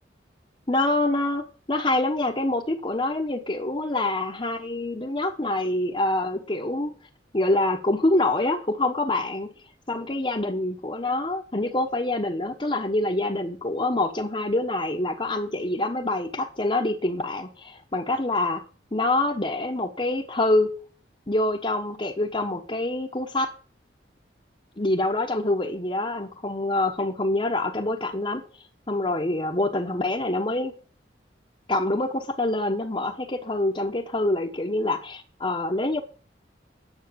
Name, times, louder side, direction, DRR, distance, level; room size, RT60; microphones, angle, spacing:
voice 1, 0.7-6.9 7.3-9.5 9.9-18.6 18.9-20.7 21.3-23.5 24.8-28.4 28.9-30.7 31.7-36.0, left 2 dB, 30° left, -1 dB, 1.1 m, -26 dB
10.5 x 8.0 x 6.9 m, 0.39 s
head